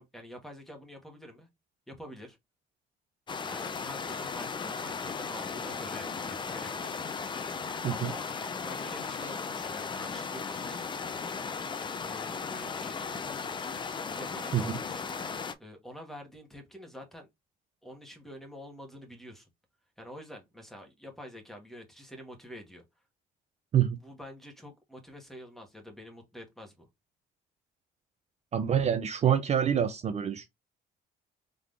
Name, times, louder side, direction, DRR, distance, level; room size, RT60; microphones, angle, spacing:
voice 1, 0.0-1.5 1.9-2.4 3.5-7.0 7.9-8.3 8.6-10.9 12.0-13.1 14.1-15.3 15.6-17.3 17.8-19.5 20.0-22.8 24.0-26.9, equal, ahead, 1.7 m, -47 dB
sound 1, 3.3-15.5, left 5 dB, 30° left, 0.7 m, -36 dB
voice 2, 28.5-30.5, right 9 dB, 40° right, 0.7 m, -26 dB
3.8 x 3.6 x 3.4 m
cardioid pair, 110°, 17 cm